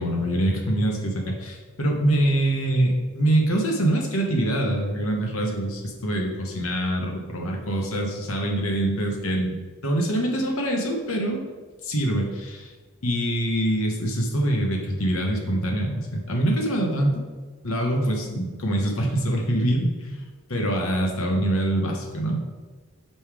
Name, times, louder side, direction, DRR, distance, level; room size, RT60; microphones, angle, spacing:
voice 1, 0.0-9.6 9.8-11.4 11.8-12.7 13.0-17.2 17.6-22.4, right 1 dB, 70° left, 1 dB, 1.1 m, -24 dB
5.4 x 5.4 x 4.8 m, 1.4 s
head